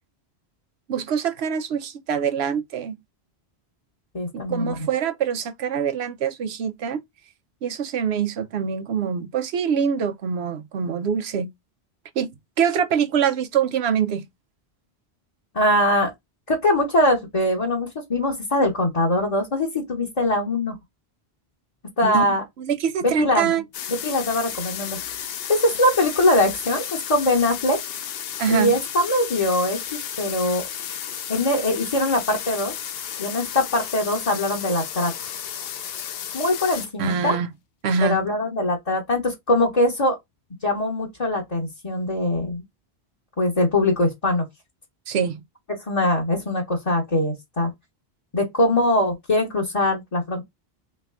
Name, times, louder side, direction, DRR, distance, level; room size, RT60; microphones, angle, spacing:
voice 1, 0.9-3.0 4.3-7.0 7.6-11.5 12.2-12.3 12.6-14.2 22.0-22.2 22.6-23.6 28.4-28.7 37.0-37.5 37.8-38.2 45.1-45.4, right 7 dB, 90° right, 0.9 m, -24 dB
voice 2, 4.1-4.9 15.5-16.1 16.5-20.8 22.0-22.4 23.0-23.5 23.9-25.0 25.5-27.8 28.5-30.6 31.3-32.7 33.2-35.1 36.3-37.4 38.0-40.2 40.6-42.6 43.4-44.5 45.9-47.7 48.3-50.4, left 1 dB, 35° left, 1.2 m, -22 dB
sound 1, 23.7-36.9, left 9 dB, 70° left, 0.8 m, -33 dB
3.5 x 3.2 x 3.5 m
omnidirectional pair, 1.1 m